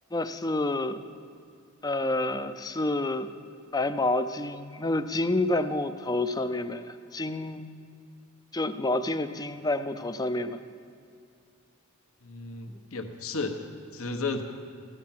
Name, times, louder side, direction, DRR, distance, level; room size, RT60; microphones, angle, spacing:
voice 1, 0.1-1.0 1.8-3.3 3.7-7.7 8.5-10.6, left 2 dB, 15° left, 11 dB, 0.5 m, -28 dB
voice 2, 12.2-13.6 13.9-14.4, left 3 dB, 70° left, 5 dB, 1.3 m, -33 dB
15.0 x 11.0 x 7.4 m, 2.3 s
head